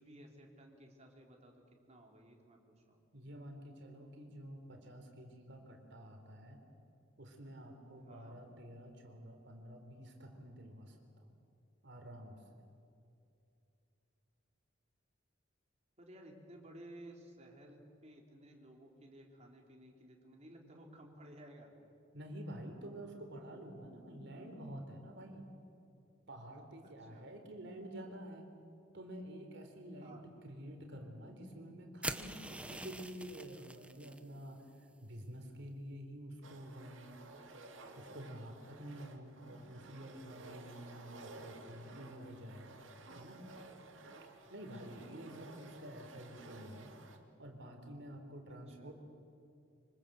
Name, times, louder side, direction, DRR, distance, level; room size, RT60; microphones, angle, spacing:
voice 1, 0.0-1.5 1.9-3.0 8.1-8.4 16.0-21.7 26.8-27.3 30.0-30.3 44.4-45.0 48.5-48.9, right 1 dB, 35° right, 1 dB, 3.6 m, -56 dB
voice 2, 3.1-6.6 7.2-11.3 11.8-12.4 22.1-25.5 26.3-28.5 28.9-37.2 38.0-42.9 43.1-43.5 44.5-46.9 47.4-48.9, right 1 dB, 60° right, 4 dB, 4.0 m, -49 dB
sound 1, 32.0-34.2, right 2 dB, 5° right, 0.9 m, -44 dB
sound 2, 36.4-47.2, right 2 dB, 80° right, 2.4 m, -54 dB
25.0 x 25.0 x 7.8 m, 2.6 s
head